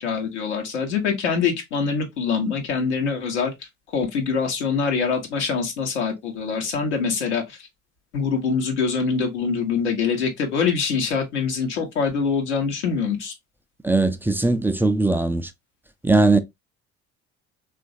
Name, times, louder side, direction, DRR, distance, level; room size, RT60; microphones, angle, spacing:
voice 1, 0.0-3.5 3.9-7.6 8.1-13.3, left 5 dB, 90° left, 0.9 m, -24 dB
voice 2, 13.8-15.5 16.0-16.4, right 2 dB, 5° right, 0.3 m, -19 dB
3.0 x 2.5 x 2.5 m
hypercardioid pair, 55°, 33 cm